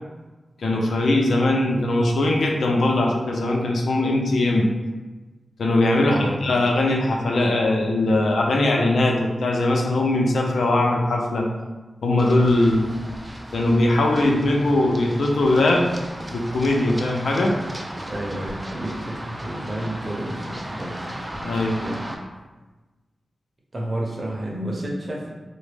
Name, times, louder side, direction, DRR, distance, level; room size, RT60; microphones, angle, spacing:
voice 1, 0.6-4.7 5.6-11.5 12.0-12.9 13.5-15.9 16.3-17.5 21.4-21.8, left 2 dB, 85° left, 0 dB, 0.5 m, -20 dB
voice 2, 6.0-6.4 18.1-21.3 21.8-22.0 23.7-25.3, right 1 dB, 35° right, -2 dB, 0.8 m, -30 dB
Run, 12.2-22.1, right 1 dB, 20° right, 0.5 m, -36 dB
3.9 x 2.0 x 3.3 m, 1.2 s
cardioid pair, 70°, 0 cm